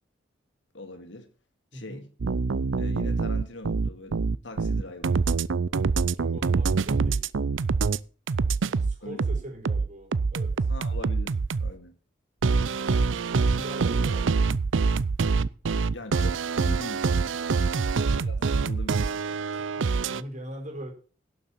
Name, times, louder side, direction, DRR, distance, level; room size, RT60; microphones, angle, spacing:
voice 1, 0.7-1.3 1.7-2.1 2.8-5.2 9.0-9.2 10.7-12.0 15.9-17.1 18.1-19.4, left 1 dB, 70° left, 2.2 m, -42 dB
voice 2, 1.7-2.1 6.2-7.2 8.6-10.7 11.0-11.1 13.3-14.4 17.7-18.1 19.5-20.9, right 1 dB, 40° right, 4.6 m, -41 dB
sound 1, 2.2-8.0 8.3-11.7 12.4-20.2, right 4 dB, 80° right, 0.5 m, -25 dB
11.5 x 7.2 x 7.2 m
head